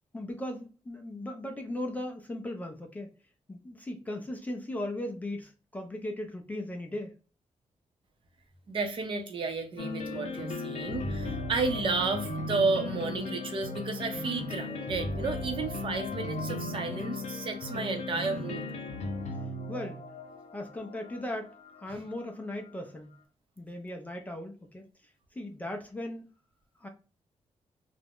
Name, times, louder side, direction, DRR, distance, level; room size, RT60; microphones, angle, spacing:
voice 1, 0.1-3.1 3.5-7.2 19.7-20.0 20.5-23.1 23.6-24.9 25.3-26.3 26.8-26.9, left 1 dB, 15° left, 0.3 m, -37 dB
voice 2, 8.7-18.6, right 4 dB, 45° right, 0.5 m, -32 dB
sound 1, 9.8-22.7, left 2 dB, 70° left, 0.6 m, -37 dB
2.4 x 2.0 x 3.4 m
wide cardioid pair, 175°, 12 cm